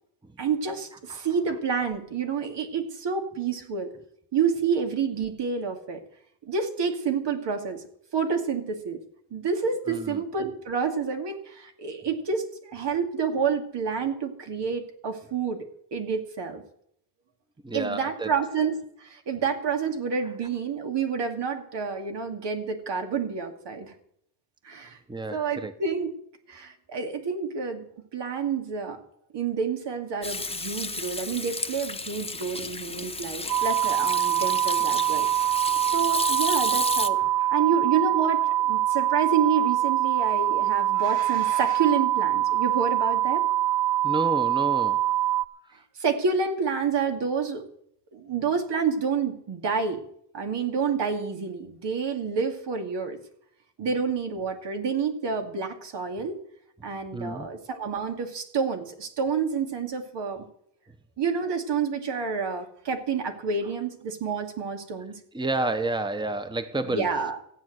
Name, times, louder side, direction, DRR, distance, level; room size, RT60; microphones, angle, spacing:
voice 1, 0.4-3.9 4.3-6.0 6.4-7.8 8.1-9.0 9.3-16.6 17.7-23.9 24.6-25.0 25.3-26.1 26.5-27.8 28.1-29.0 29.3-35.5 35.8-37.2 37.5-43.4 46.0-47.7 48.1-50.0 50.3-53.2 53.8-56.4 56.8-60.4 61.2-65.2 66.8-67.4, right 5 dB, 80° right, 4 dB, 2.6 m, -28 dB
voice 2, 9.9-10.2 17.6-18.3 25.1-25.7 37.2-37.5 44.0-45.1 57.1-57.5 65.3-67.1, right 2 dB, 10° right, 10 dB, 1.0 m, -30 dB
Hands / Sink (filling or washing), 30.2-37.1, left 3 dB, 15° left, 1.0 m, -32 dB
sound 1, 33.5-45.5, right 13 dB, 60° right, 0.6 m, -24 dB
15.5 x 8.7 x 7.9 m, 0.70 s
cardioid pair, 95°, 42 cm